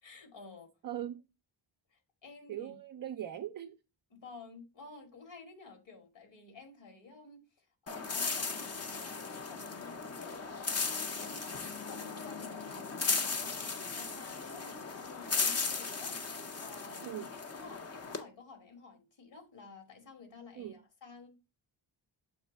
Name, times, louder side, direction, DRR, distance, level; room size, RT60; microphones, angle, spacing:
voice 1, 0.0-0.7 1.9-3.0 4.1-10.8 11.2-16.2 16.6-21.3, left 4 dB, 65° left, 2.2 m, -52 dB
voice 2, 0.8-1.2 2.5-3.8 17.0-17.3 20.6-20.8, right 11 dB, 45° right, 0.4 m, -40 dB
sound 1, 7.9-18.2, left 4 dB, 30° left, 0.7 m, -36 dB
7.2 x 3.1 x 5.1 m
wide cardioid pair, 165°, 47 cm